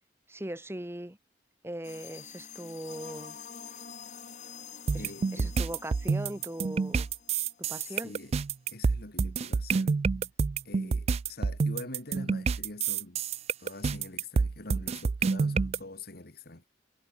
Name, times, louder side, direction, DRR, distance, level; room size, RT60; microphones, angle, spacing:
voice 1, 0.3-1.2 1.6-3.4 4.9-7.1 7.6-8.2, right 1 dB, 15° right, 1.8 m, -40 dB
sound 1, 1.8-8.1, left 6 dB, 45° left, 4.9 m, -47 dB
sound 2, 4.9-15.8, right 5 dB, 35° right, 0.3 m, -28 dB
voice 2, 5.0-5.6 7.7-8.4 8.7-10.3 10.6-13.2 13.6-16.7, left 2 dB, 60° left, 2.8 m, -45 dB
head